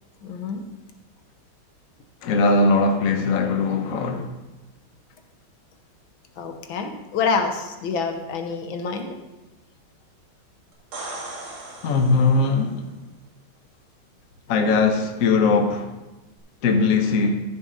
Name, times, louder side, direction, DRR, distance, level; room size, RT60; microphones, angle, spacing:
voice 1, 0.2-0.6 6.4-9.2, left 5 dB, 70° left, 1.7 m, -27 dB
voice 2, 2.2-4.3 11.8-12.9 14.5-15.9 16.6-17.4, left 3 dB, 50° left, 1.1 m, -20 dB
sound 1, 10.7-12.7 16.4-16.5, right 2 dB, 80° right, 2.7 m, -37 dB
14.0 x 6.8 x 3.9 m
omnidirectional pair, 2.3 m